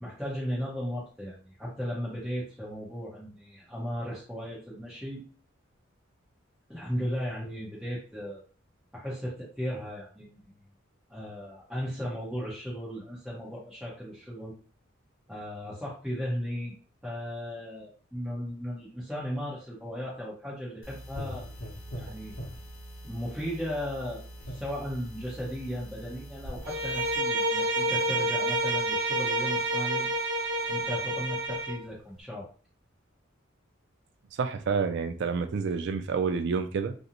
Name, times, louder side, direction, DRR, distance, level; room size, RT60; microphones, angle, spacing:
voice 1, 0.0-5.3 6.7-8.4 8.9-10.6 11.1-14.5 15.3-16.7 17.0-21.5 22.0-22.3 23.0-30.1 30.7-32.5, equal, ahead, -8 dB, 0.7 m, -36 dB
sound 1, 20.8-27.2, equal, 65° left, 0.8 m, -42 dB
Bowed string instrument, 26.6-31.8, right 1 dB, 85° right, 0.7 m, -28 dB
voice 2, 34.4-36.9, right 5 dB, 60° right, 8 dB, 0.3 m, -28 dB
2.5 x 2.0 x 2.8 m, 0.40 s
head